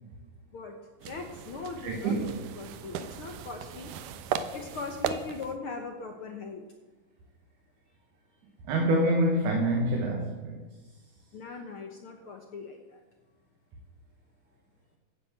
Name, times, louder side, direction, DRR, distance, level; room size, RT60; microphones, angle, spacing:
voice 1, 0.5-3.9 4.5-6.6 11.3-13.0, left 4 dB, 60° left, 1.4 m, -40 dB
sound 1, 1.0-5.6, right 8 dB, 85° right, 2.4 m, -37 dB
voice 2, 1.8-2.3 8.6-10.6, right 1 dB, 70° right, 2.9 m, -26 dB
15.5 x 9.7 x 7.5 m
omnidirectional pair, 3.7 m